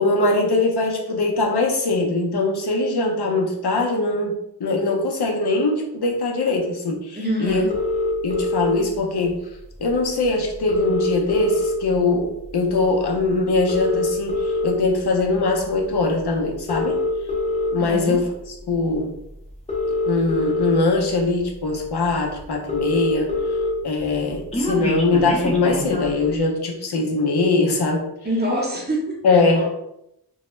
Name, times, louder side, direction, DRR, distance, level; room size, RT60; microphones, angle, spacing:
voice 1, 0.0-7.6 8.2-9.4 9.8-17.0 17.7-18.3 18.7-19.1 20.0-23.3 23.8-28.0 29.2-29.7, left 3 dB, 70° left, 0 dB, 0.6 m, -21 dB
voice 2, 7.2-7.7 17.8-18.2 28.2-29.7, equal, 25° right, -2 dB, 0.7 m, -26 dB
sound 1, 7.7-8.7 9.9-10.0 10.2-10.3 10.5-12.0 12.5-12.7 13.5-14.7 15.4-15.6 16.5-17.7 18.9-19.0 19.5-20.7 21.4-21.5 21.8-21.9 22.1-22.2 22.4-23.7 24.0-26.2, left 2 dB, 15° left, 0.5 m, -24 dB
2.2 x 2.0 x 3.0 m, 0.82 s
wide cardioid pair, 70°, 40 cm